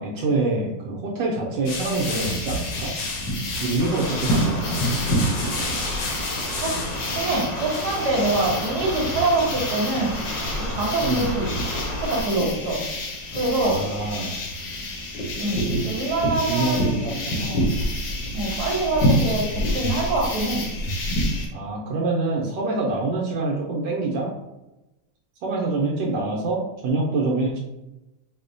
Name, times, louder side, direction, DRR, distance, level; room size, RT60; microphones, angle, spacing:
voice 1, 0.0-2.9 3.6-4.9 11.0-11.3 13.6-14.4 16.5-17.7 21.5-24.3 25.4-27.6, right 2 dB, 85° right, -3 dB, 1.3 m, -26 dB
Distant fireworks in the South, 1.7-21.5, equal, 75° left, 1.4 m, -27 dB
sound 1, 3.8-12.2, right 1 dB, 15° left, 0.5 m, -33 dB
voice 2, 7.1-10.2 10.6-11.5 12.0-12.8 13.3-13.8 15.4-17.2 18.3-19.4 19.7-20.6, right 2 dB, 65° right, -1 dB, 1.4 m, -24 dB
4.7 x 2.1 x 2.6 m, 0.98 s
omnidirectional pair, 1.9 m